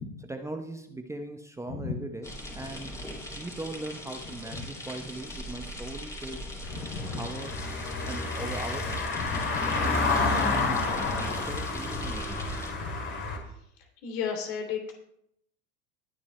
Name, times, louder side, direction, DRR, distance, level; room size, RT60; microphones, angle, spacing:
voice 1, 0.2-2.9 3.4-6.4 7.2-7.5 8.1-9.1 9.6-12.5, right 2 dB, 10° right, 4 dB, 0.9 m, -40 dB
sound 1, 2.2-12.7, left 1 dB, 10° left, 2.9 m, -41 dB
Car passing by / Engine, 6.6-13.4, left 3 dB, 30° left, 2.7 m, -30 dB
voice 2, 6.9-7.2 9.2-9.4 14.0-15.0, left 6 dB, 55° left, 1 dB, 2.9 m, -33 dB
20.5 x 9.8 x 2.3 m, 0.74 s
figure-of-eight pair, 80°, 37 cm